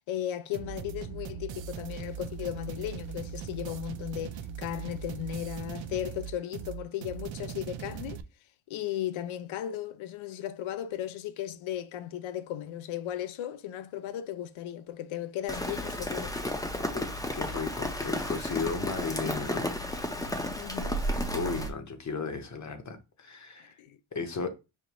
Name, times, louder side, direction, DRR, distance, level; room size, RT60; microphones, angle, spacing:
voice 1, 0.1-8.2 8.7-16.4 20.6-21.0 23.8-24.0, left 11 dB, 80° left, 0.6 m, -36 dB
sound 1, 0.5-8.2, right 8 dB, 70° right, 0.5 m, -40 dB
Rain, 15.5-21.7, left 1 dB, 10° left, 0.6 m, -32 dB
voice 2, 16.9-19.7 21.3-23.8 24.1-24.5, left 4 dB, 35° left, 0.8 m, -35 dB
5.2 x 2.5 x 3.0 m
cardioid pair, 115°, 48 cm